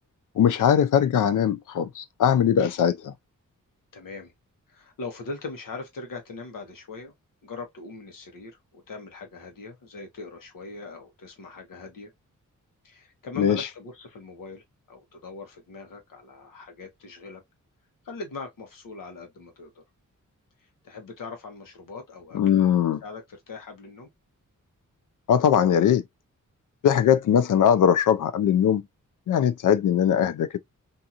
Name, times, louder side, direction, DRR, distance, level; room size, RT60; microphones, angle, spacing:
voice 1, 0.4-3.1 13.4-13.6 22.3-23.0 25.3-26.0 26.8-28.8 29.3-30.6, left 9 dB, 70° left, 0.5 m, -20 dB
voice 2, 3.9-4.3 4.7-7.1 7.4-12.1 12.8-17.4 18.0-19.8 20.6-22.7 23.0-24.1, left 3 dB, 90° left, 1.1 m, -41 dB
2.8 x 2.6 x 2.4 m
wide cardioid pair, 160°, 32 cm